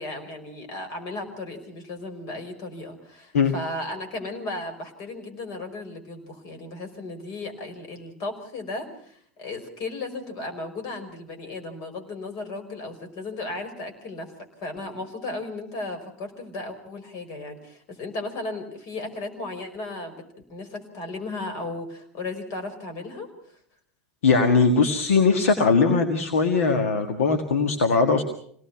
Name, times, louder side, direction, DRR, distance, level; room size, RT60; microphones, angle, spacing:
voice 1, 0.0-14.3 14.6-20.2 20.5-23.3, left 2 dB, 50° left, 6 dB, 5.5 m, -35 dB
voice 2, 24.2-28.2, left 4 dB, 75° left, 5 dB, 1.9 m, -20 dB
26.5 x 18.5 x 6.0 m, 0.62 s
figure-of-eight pair, 80°, 8 cm